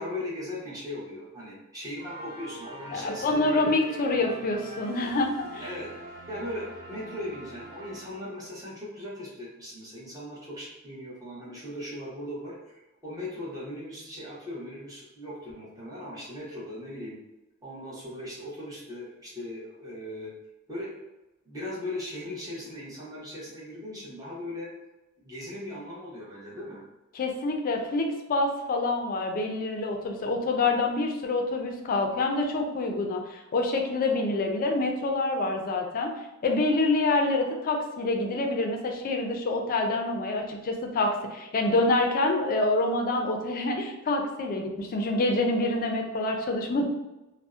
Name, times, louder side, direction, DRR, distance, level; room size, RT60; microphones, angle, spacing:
voice 1, 0.0-4.0 5.6-17.2 17.6-20.3 20.7-20.9 21.5-24.7 25.2-26.8, left 1 dB, 15° right, -7 dB, 0.8 m, -38 dB
sound 1, 2.0-8.6, right 1 dB, 50° right, 0.7 m, -44 dB
voice 2, 2.9-5.6 27.1-36.1 36.4-46.9, left 2 dB, 40° left, 3 dB, 0.4 m, -26 dB
2.6 x 2.0 x 2.3 m, 1.0 s
head